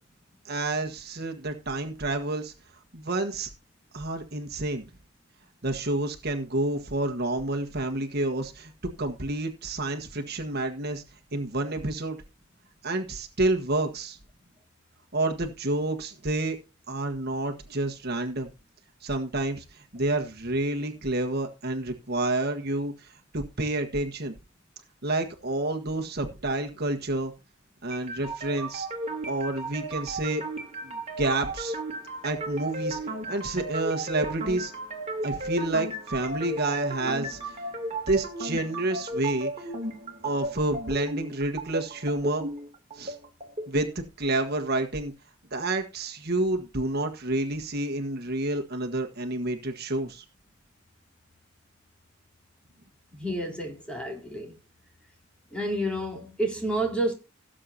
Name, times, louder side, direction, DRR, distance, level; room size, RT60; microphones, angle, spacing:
voice 1, 0.4-2.5 2.9-3.5 3.9-4.8 5.6-8.7 9.0-11.0 11.3-12.2 12.8-14.2 15.1-16.6 16.9-18.5 19.0-24.3 25.0-27.3 27.8-28.9 29.3-30.4 30.8-31.8 32.2-33.0 33.3-34.7 35.2-37.5 38.1-39.7 40.2-42.5 42.9-43.2 43.7-45.1 45.5-50.2, right 2 dB, 55° right, 1.5 m, -29 dB
sound 1, 27.9-43.9, right 1 dB, 35° right, 2.9 m, -34 dB
voice 2, 53.1-54.6 55.5-57.1, right 1 dB, 5° left, 3.6 m, -30 dB
18.0 x 7.7 x 2.8 m
head